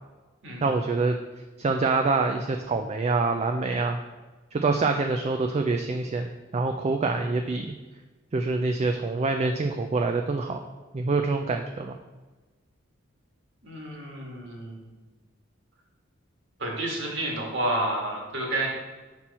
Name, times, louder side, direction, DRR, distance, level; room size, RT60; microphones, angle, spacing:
voice 1, 0.6-1.2 1.6-4.0 4.5-6.3 6.5-7.7 8.3-10.6 10.9-12.0, right 3 dB, 30° right, 4 dB, 0.4 m, -25 dB
voice 2, 13.6-14.9 16.6-18.7, right 1 dB, 65° right, -2 dB, 1.8 m, -30 dB
6.1 x 5.9 x 4.2 m, 1.2 s
head